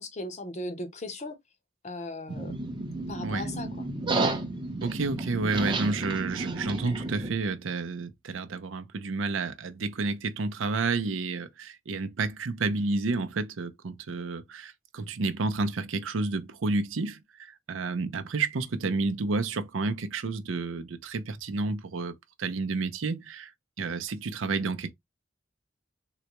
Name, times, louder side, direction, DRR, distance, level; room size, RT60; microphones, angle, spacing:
voice 1, 0.0-1.4 1.8-2.5 3.1-3.9, left 1 dB, 35° left, 0.8 m, -37 dB
sound 1, 2.3-7.3, right 2 dB, 25° right, 0.7 m, -32 dB
voice 2, 4.8-23.5 23.8-24.9, right 3 dB, 85° right, 0.6 m, -30 dB
3.9 x 2.2 x 2.9 m
head